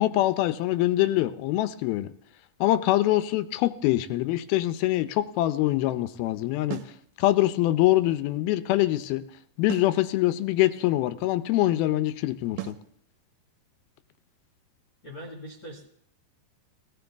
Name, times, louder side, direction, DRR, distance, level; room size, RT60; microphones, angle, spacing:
voice 1, 0.0-2.1 2.6-6.8 7.2-9.2 9.6-12.8, left 15 dB, 85° left, 13 dB, 2.6 m, -24 dB
sound 1, 6.7-7.0 9.7-10.0 12.6-12.9, right 15 dB, 80° right, 2.4 m, -35 dB
voice 2, 15.0-16.0, equal, 45° left, -1 dB, 1.9 m, -41 dB
18.0 x 16.0 x 3.5 m, 0.69 s
omnidirectional pair, 4.3 m